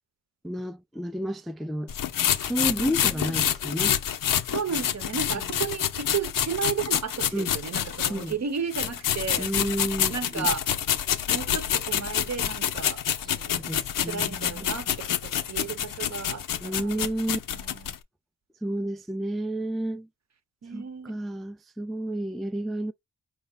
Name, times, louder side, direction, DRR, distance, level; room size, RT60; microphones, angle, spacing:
voice 1, 0.4-1.9 2.4-4.0 7.3-7.6 8.1-8.3 9.4-10.5 13.2-14.7 16.6-17.4 18.6-20.1 20.7-22.9, right 1 dB, ahead, 0.3 m, -31 dB
sound 1, 1.9-8.3 8.7-18.0, left 10 dB, 80° left, 0.5 m, -27 dB
voice 2, 2.8-3.5 4.5-9.5 10.1-10.7 11.3-13.7 14.0-18.0 20.6-21.2, right 6 dB, 55° right, 0.8 m, -34 dB
4.8 x 2.1 x 4.0 m
cardioid pair, 50°, 32 cm